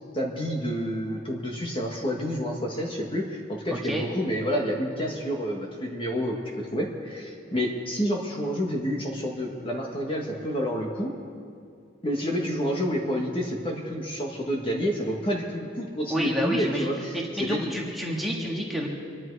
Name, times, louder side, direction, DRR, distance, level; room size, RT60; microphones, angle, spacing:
voice 1, 0.1-11.2 12.0-17.7, equal, 25° left, 0 dB, 1.5 m, -29 dB
voice 2, 3.7-4.1 16.1-18.9, equal, ahead, -3 dB, 1.7 m, -29 dB
26.0 x 11.0 x 4.7 m, 2.3 s
head